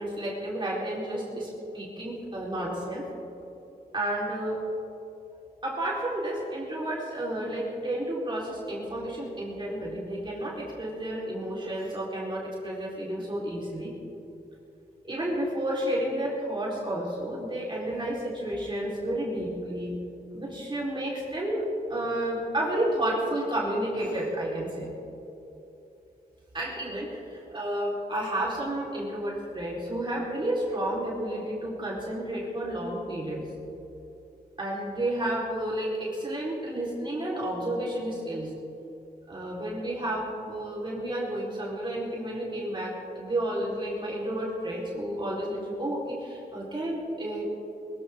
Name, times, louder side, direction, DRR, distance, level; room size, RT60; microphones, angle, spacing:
voice 1, 0.0-3.1 3.9-4.6 5.6-13.9 15.0-20.0 20.3-24.9 26.5-33.5 34.6-38.5 39.3-47.4, right 1 dB, 30° right, -5 dB, 4.1 m, -31 dB
23.0 x 15.0 x 3.7 m, 2.9 s
wide cardioid pair, 100°, 16 cm